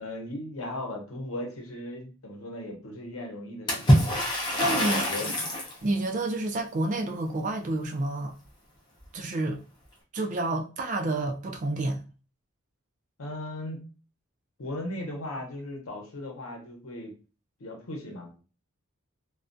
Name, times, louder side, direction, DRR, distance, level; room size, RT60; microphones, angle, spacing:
voice 1, 0.0-4.0 4.8-5.3 13.2-13.9 14.6-17.1 17.6-18.4, left 1 dB, 70° left, 0.8 m, -37 dB
Water / Splash splatter, 3.7-5.8, equal, 20° left, 0.5 m, -24 dB
voice 2, 4.6-5.0 5.8-8.3 9.1-9.6 10.1-12.0, right 2 dB, 35° right, 0.3 m, -29 dB
2.3 x 2.2 x 2.5 m
head